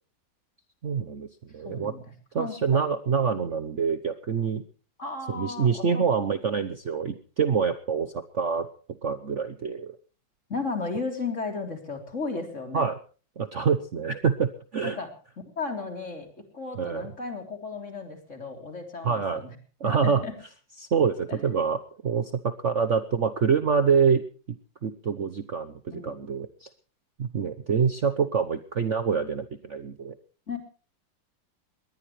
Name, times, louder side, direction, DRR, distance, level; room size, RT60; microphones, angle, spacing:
voice 1, 0.8-1.3 1.5-1.9 2.3-4.6 5.3-8.7 9.0-10.0 12.7-13.0 13.4-15.0 16.7-17.1 19.0-19.4 19.8-20.2 20.8-24.2 24.8-26.7 27.2-30.1, right 6 dB, 45° right, 10 dB, 1.1 m, -26 dB
voice 2, 1.6-2.9 5.0-6.0 10.5-12.9 14.8-15.1 15.6-19.5 19.8-20.3 21.3-21.4 25.9-26.2 30.5-30.6, left 4 dB, 40° left, 5 dB, 3.9 m, -35 dB
21.5 x 19.0 x 3.2 m, 0.38 s
omnidirectional pair, 2.1 m